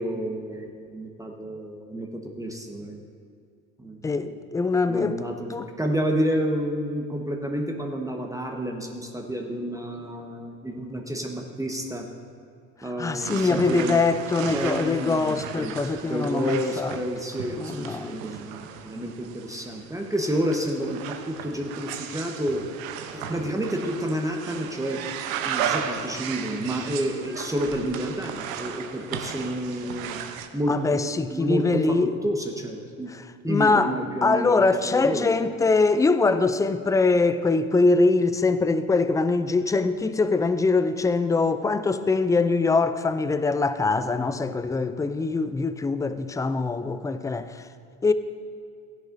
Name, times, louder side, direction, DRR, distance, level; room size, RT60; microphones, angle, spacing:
voice 1, 0.0-2.1 2.4-3.0 3.8-4.0 4.9-5.5 5.8-12.1 12.8-14.0 14.5-15.7 16.0-22.6 23.1-25.0 25.4-30.1 30.5-30.7 31.3-33.1 33.4-35.3, equal, 10° right, 1.2 m, -29 dB
voice 2, 4.0-5.2 5.5-5.7 12.8-17.0 17.6-18.2 30.7-32.1 33.1-33.9 34.2-47.7 48.0-48.1, left 3 dB, 10° left, 0.4 m, -23 dB
sound 1, 13.2-30.5, right 8 dB, 75° right, 0.9 m, -35 dB
16.0 x 10.5 x 2.7 m
hypercardioid pair, 70°, 41 cm